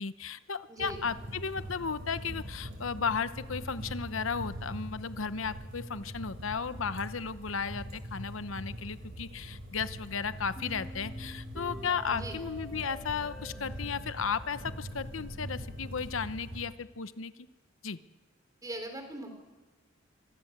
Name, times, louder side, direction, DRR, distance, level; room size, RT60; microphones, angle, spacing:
voice 1, 0.0-17.3 17.8-18.0, left 6 dB, 75° left, 13 dB, 0.9 m, -35 dB
voice 2, 0.7-1.0 12.1-12.4 18.6-19.3, right 1 dB, 20° right, 6 dB, 3.8 m, -40 dB
sound 1, 0.8-16.7, equal, 55° right, 7.8 m, -42 dB
sound 2, 10.6-15.6, equal, ahead, 2.2 m, -49 dB
26.0 x 19.0 x 8.0 m, 1.3 s
head